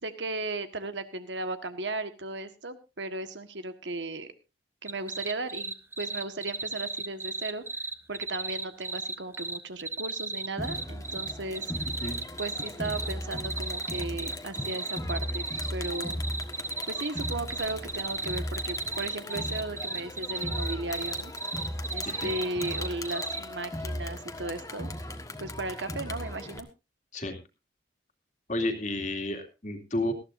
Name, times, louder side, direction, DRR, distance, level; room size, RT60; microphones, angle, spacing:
voice 1, 0.0-4.3 4.8-7.6 8.1-11.6 12.4-15.4 15.7-16.2 16.9-21.3 21.9-24.9 25.4-26.7, right 2 dB, 85° right, 9 dB, 1.5 m, -36 dB
sound 1, 4.9-23.4, right 3 dB, 15° right, 0.8 m, -34 dB
Crowd, 10.6-26.6, left 1 dB, 20° left, 1.4 m, -37 dB
voice 2, 28.5-30.1, left 1 dB, 40° left, 5 dB, 2.5 m, -31 dB
19.0 x 14.5 x 2.6 m, 0.27 s
head